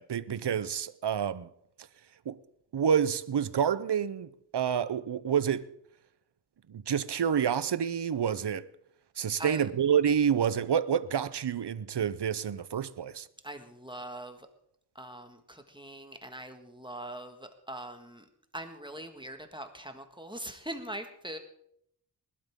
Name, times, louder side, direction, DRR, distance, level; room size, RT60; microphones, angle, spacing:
voice 1, 0.0-1.5 2.3-2.4 2.7-5.7 6.7-8.7 9.2-13.3, right 8 dB, 75° right, 0.7 m, -28 dB
voice 2, 9.4-9.7 13.4-14.5 15.0-18.3 18.5-21.4, right 1 dB, 10° right, 1.6 m, -42 dB
20.5 x 12.0 x 3.6 m
wide cardioid pair, 55°, 41 cm